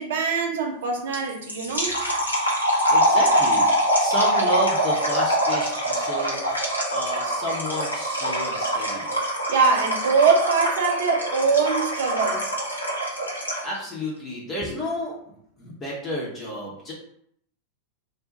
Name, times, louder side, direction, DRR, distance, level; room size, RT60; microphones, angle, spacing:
voice 1, 0.0-2.0 9.5-12.5, right 5 dB, 60° right, 2 dB, 0.6 m, -22 dB
sound 1, 1.1-13.8, equal, 85° left, 0.9 m, -24 dB
voice 2, 2.9-6.4 6.9-9.1 13.6-16.9, equal, 20° left, -5 dB, 0.9 m, -31 dB
2.6 x 2.3 x 3.8 m, 0.69 s
figure-of-eight pair, 90°, 0 cm